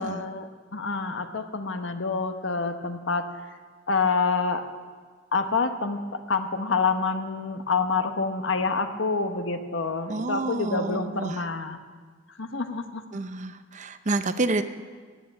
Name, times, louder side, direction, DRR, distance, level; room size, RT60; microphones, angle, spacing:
voice 1, 0.0-3.3 3.9-4.6 5.3-11.8 12.4-13.0, left 4 dB, 70° left, 7 dB, 1.1 m, -27 dB
voice 2, 10.1-11.4 13.1-14.6, right 2 dB, 40° right, 10 dB, 0.7 m, -29 dB
15.0 x 9.2 x 8.5 m, 1.5 s
head